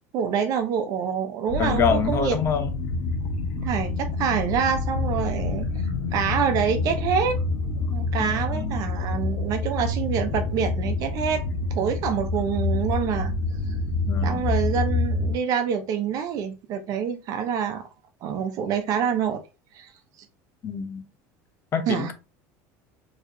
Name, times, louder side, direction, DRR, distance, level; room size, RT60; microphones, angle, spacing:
voice 1, 0.1-2.4 3.6-5.7 6.1-7.4 7.8-11.4 11.7-13.3 14.2-17.9 18.2-19.4 19.7-19.9 21.9-22.1, right 7 dB, 50° right, 0.9 m, -26 dB
sound 1, 1.5-15.4, left 3 dB, 65° left, 1.1 m, -27 dB
voice 2, 1.6-2.7 8.2-8.8 14.1-14.5 20.6-21.0 21.7-22.1, left 6 dB, 35° left, 0.9 m, -26 dB
4.6 x 3.2 x 2.8 m
supercardioid pair, 130°, 8 cm